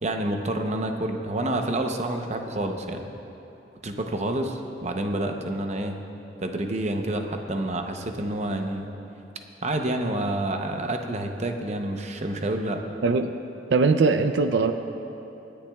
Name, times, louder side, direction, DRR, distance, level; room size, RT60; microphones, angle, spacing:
voice 1, 0.0-3.1 3.8-6.0 6.4-8.9 9.6-12.8, right 1 dB, 40° right, 4 dB, 0.7 m, -28 dB
voice 2, 13.0-13.3 13.7-14.7, right 4 dB, 80° right, 8 dB, 0.4 m, -21 dB
26.0 x 10.0 x 2.3 m, 3.0 s
head